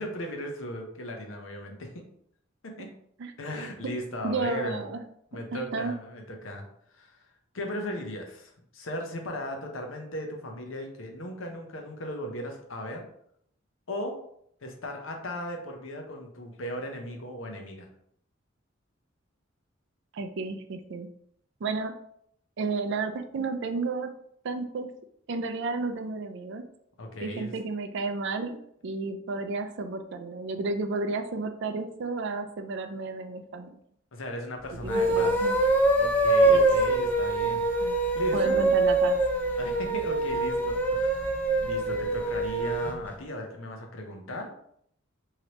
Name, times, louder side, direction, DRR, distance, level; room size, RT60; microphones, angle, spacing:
voice 1, 0.0-2.0 2.6-2.9 3.4-4.8 5.3-6.7 6.9-7.2 7.5-13.0 13.9-14.1 14.6-17.9 27.0-27.5 34.1-35.3 36.0-38.8 39.6-44.5, equal, 80° left, 3 dB, 0.7 m, -37 dB
voice 2, 4.2-5.0 5.5-5.9 20.1-21.1 21.6-21.9 22.6-24.1 24.4-24.9 25.3-26.6 27.2-28.6 28.8-33.8 34.7-35.6 36.5-36.7 37.8-38.0 38.3-39.2, right 3 dB, 65° right, 7 dB, 0.4 m, -32 dB
sound 1, 34.8-43.0, right 2 dB, 10° left, 0.4 m, -24 dB
3.2 x 2.8 x 2.9 m, 0.69 s
head